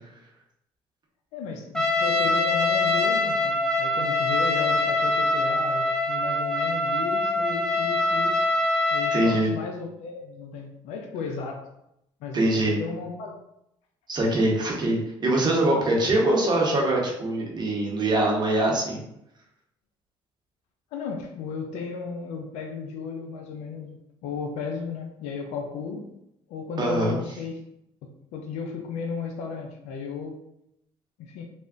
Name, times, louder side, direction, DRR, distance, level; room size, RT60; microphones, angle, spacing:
voice 1, 1.3-8.4 8.9-11.7 12.2-13.4 20.9-26.1 26.5-27.6 28.0-30.4 31.2-31.4, left 5 dB, 80° left, 2 dB, 0.5 m, -34 dB
Trumpet, 1.8-9.4, left 2 dB, 5° left, 0.7 m, -24 dB
voice 2, 9.1-9.5 12.3-12.8 14.1-19.0 26.8-27.2, right 1 dB, 40° right, -2 dB, 1.1 m, -23 dB
3.4 x 2.5 x 2.5 m, 0.80 s
supercardioid pair, 70°, 11 cm